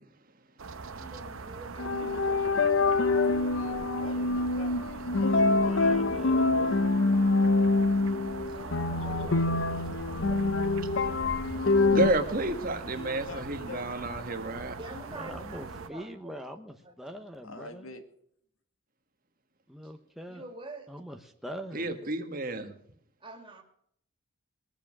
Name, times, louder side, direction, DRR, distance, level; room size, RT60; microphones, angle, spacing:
sound 1, 0.6-15.9, right 4 dB, 80° right, 0.9 m, -42 dB
voice 1, 0.9-2.6 8.5-9.8 10.2-11.1 14.8-16.3 16.8-16.9 19.8-19.9 20.3-20.9 23.2-23.6, right 2 dB, 25° right, 3 dB, 2.4 m, -46 dB
sound 2, 1.8-12.1, left 3 dB, 65° left, 0.7 m, -25 dB
voice 2, 3.5-6.0 12.8-13.9 17.4-18.0, left 2 dB, 85° left, 7 dB, 1.9 m, -45 dB
voice 3, 5.3-6.8 15.0-17.9 19.7-20.4 20.9-21.9, equal, ahead, 3 dB, 0.9 m, -43 dB
voice 4, 11.9-14.7 21.7-22.7, right 2 dB, 45° right, 7 dB, 1.4 m, -30 dB
21.5 x 7.3 x 6.1 m, 0.68 s
head